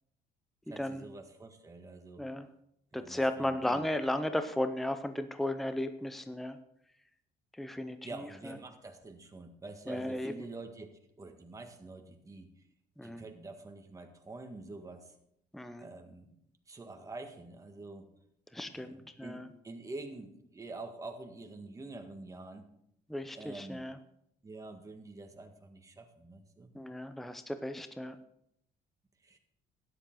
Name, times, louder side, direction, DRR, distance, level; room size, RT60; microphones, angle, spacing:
voice 1, 0.7-2.3 2.9-3.8 8.0-10.9 11.2-12.5 13.0-15.1 15.8-16.4 16.7-18.1 18.7-22.7 23.3-23.9 24.4-26.7 29.2-29.4, right 2 dB, 20° right, 4 dB, 1.7 m, -47 dB
voice 2, 2.9-6.6 7.6-8.0 9.9-10.3 13.0-13.2 15.5-15.8 18.5-19.5 23.1-24.0 26.7-28.2, left 1 dB, ahead, 9 dB, 0.7 m, -35 dB
13.0 x 10.0 x 3.9 m, 0.73 s
cardioid pair, 110°, 17 cm